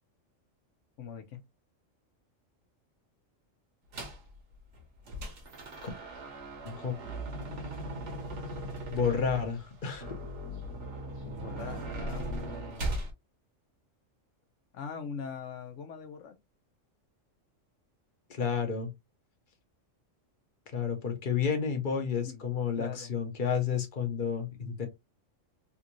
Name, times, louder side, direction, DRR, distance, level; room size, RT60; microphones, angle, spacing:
voice 1, 1.0-1.4 11.2-13.0 14.7-16.3 22.3-22.4 22.8-23.1, left 7 dB, 75° left, 1.0 m, -42 dB
sound 1, 3.9-4.3 4.7-13.1, right 1 dB, 65° right, 1.3 m, -38 dB
voice 2, 6.6-7.0 8.9-10.2 18.3-18.9 20.7-24.9, left 6 dB, 45° left, 0.9 m, -31 dB
3.4 x 2.5 x 2.9 m
omnidirectional pair, 1.3 m